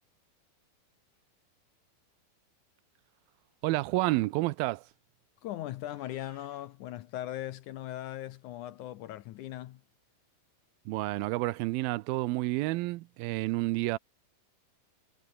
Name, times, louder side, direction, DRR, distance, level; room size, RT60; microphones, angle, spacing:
voice 1, 3.6-4.8 10.9-14.0, right 19 dB, 90° right, 2.5 m, -30 dB
voice 2, 5.4-9.8, left 13 dB, 75° left, 1.9 m, -39 dB
Meow, 5.9-6.7, right 5 dB, 30° right, 2.2 m, -62 dB
omnidirectional pair, 4.2 m